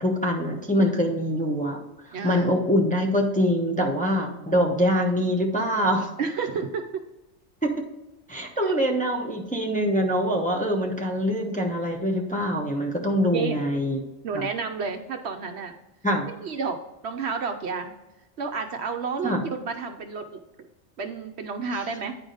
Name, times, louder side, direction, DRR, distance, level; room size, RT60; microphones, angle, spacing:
voice 1, 0.0-1.8 2.2-6.1 7.6-7.7 8.3-14.0 14.3-14.5 16.0-16.2 19.2-19.4, equal, 5° left, 0 dB, 0.9 m, -24 dB
voice 2, 2.1-2.5 4.1-4.6 6.2-7.0 8.6-8.7 13.3-13.6 14.2-15.7 16.4-17.9 18.4-20.4 21.0-22.2, right 5 dB, 65° right, 5 dB, 0.9 m, -31 dB
9.6 x 4.9 x 3.9 m, 0.99 s
omnidirectional pair, 1.3 m